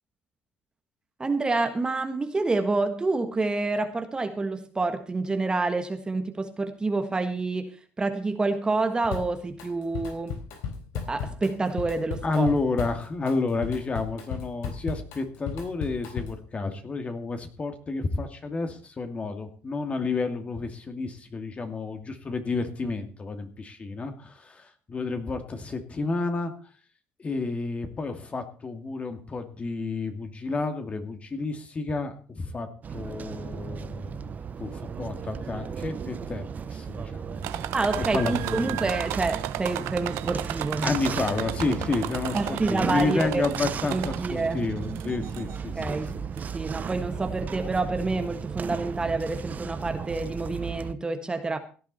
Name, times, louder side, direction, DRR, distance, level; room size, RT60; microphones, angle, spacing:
voice 1, 1.2-10.4 11.1-12.5 37.7-40.9 42.3-43.4 43.9-44.6 45.7-51.6, right 3 dB, 20° right, 1.5 m, -28 dB
Drum kit, 9.1-9.7 9.9-16.5, left 6 dB, 90° left, 4.1 m, -35 dB
voice 2, 12.2-26.5 27.2-34.3 34.6-37.6 38.0-38.9 40.8-46.0, left 3 dB, 30° left, 2.5 m, -30 dB
sound 1, 32.8-50.9, right 7 dB, 35° right, 0.9 m, -35 dB
sound 2, 37.4-44.5 44.9-45.6 46.4-46.5 46.9-47.0, right 14 dB, 80° right, 1.1 m, -34 dB
17.0 x 11.0 x 4.2 m
cardioid pair, 105°, 4 cm